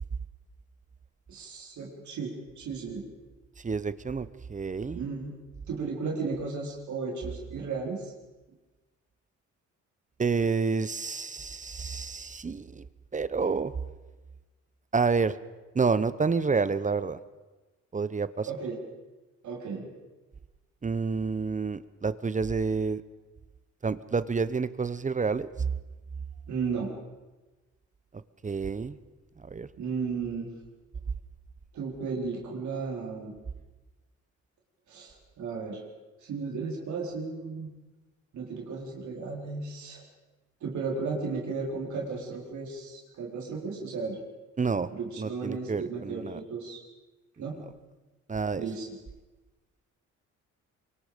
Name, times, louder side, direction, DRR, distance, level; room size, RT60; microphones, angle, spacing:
voice 1, 1.3-3.0 4.9-5.3 5.7-8.1 18.5-18.8 19.4-19.9 26.5-26.9 29.8-30.5 31.7-33.3 34.9-35.8 36.2-37.7 38.3-40.0 40.6-44.2 44.9-46.8 47.4-47.6 48.5-48.9, right 4 dB, 70° right, -1 dB, 4.6 m, -34 dB
voice 2, 3.6-5.0 10.2-12.9 13.1-13.7 14.9-15.4 15.7-17.2 17.9-18.5 20.8-23.0 23.8-25.5 28.4-29.0 29.4-29.7 44.6-44.9 45.2-46.4 48.3-48.6, right 4 dB, 25° right, 15 dB, 0.8 m, -29 dB
25.5 x 23.0 x 5.2 m, 1.2 s
cardioid pair, 90°, 30 cm